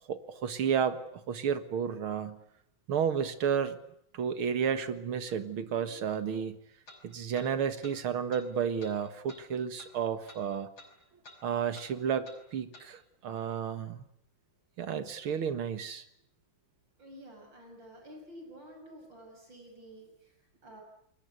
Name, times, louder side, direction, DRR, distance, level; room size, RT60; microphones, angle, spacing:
voice 1, 0.1-1.0 1.3-2.4 2.9-3.8 4.1-6.6 7.0-10.7 11.4-14.0 14.8-16.0, right 7 dB, 90° right, 11 dB, 2.5 m, -32 dB
sound 1, 5.3-5.4 6.9-7.0 7.4-7.5 7.8-8.0 8.3-8.5 8.8-8.9 9.3-9.4 9.8-9.9 10.3-10.4 10.8-10.9 11.2-11.4 11.7-11.9 12.2-12.4 12.7-12.9, left 2 dB, 70° left, 6.2 m, -51 dB
voice 2, 17.0-20.8, equal, 65° right, 3 dB, 7.1 m, -50 dB
30.0 x 22.0 x 8.2 m, 0.73 s
omnidirectional pair, 2.2 m